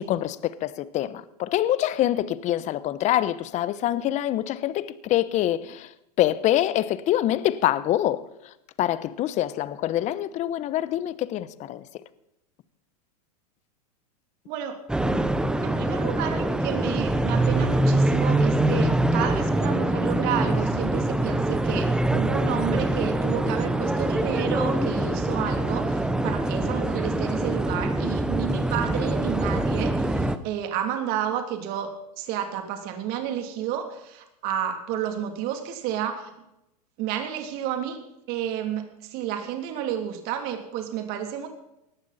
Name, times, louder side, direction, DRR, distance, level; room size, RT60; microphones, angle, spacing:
voice 1, 0.0-5.9 6.2-8.2 8.8-11.8, left 13 dB, 35° left, 1.0 m, -25 dB
voice 2, 14.5-15.2 15.6-36.3 37.0-38.0 38.3-41.5, right 10 dB, 50° right, 3.1 m, -31 dB
sound 1, 14.9-30.4, right 1 dB, 5° right, 0.9 m, -24 dB
19.0 x 14.5 x 4.3 m
hypercardioid pair, 115°, 20 cm